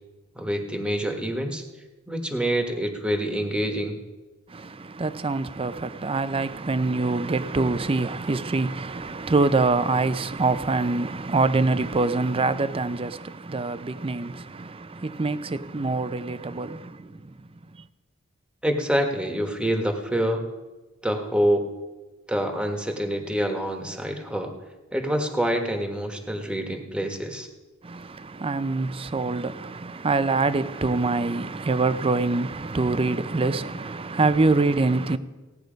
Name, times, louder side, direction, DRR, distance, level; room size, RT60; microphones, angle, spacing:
voice 1, 0.3-1.6 2.1-4.0 18.6-20.4 21.0-21.6 22.3-24.5 24.9-27.5, equal, 5° right, 1.4 m, -26 dB
voice 2, 4.5-17.3 27.8-35.2, right 3 dB, 25° right, 0.5 m, -25 dB
17.0 x 9.5 x 5.2 m
head